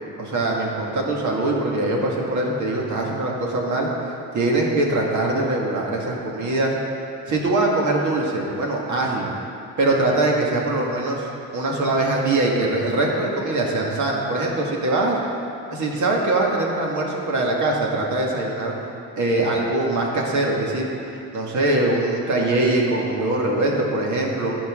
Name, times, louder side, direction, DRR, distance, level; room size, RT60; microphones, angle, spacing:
voice 1, 0.2-6.8 7.3-9.3 9.8-11.3 11.5-15.2 15.7-18.7 19.2-20.9 21.3-24.5, right 2 dB, 60° right, -2 dB, 1.9 m, -22 dB
16.0 x 5.6 x 3.7 m, 2.7 s
supercardioid pair, 80°, 34 cm